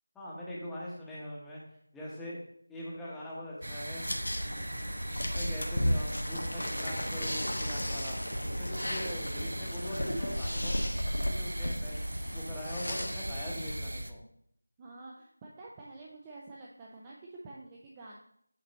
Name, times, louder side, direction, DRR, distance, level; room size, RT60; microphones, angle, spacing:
voice 1, 0.1-1.6 1.9-2.4 2.7-4.0 4.6-8.2 8.6-12.0 12.3-14.2, left 1 dB, 5° left, -7 dB, 0.9 m, -42 dB
sound 1, 3.6-14.1, right 1 dB, 80° right, 0.6 m, -38 dB
sound 2, 4.0-13.8, equal, 80° left, 1.2 m, -35 dB
voice 2, 14.8-18.2, right 2 dB, 15° right, -3 dB, 0.5 m, -48 dB
8.5 x 3.0 x 4.0 m, 0.70 s
figure-of-eight pair, 170°, 0 cm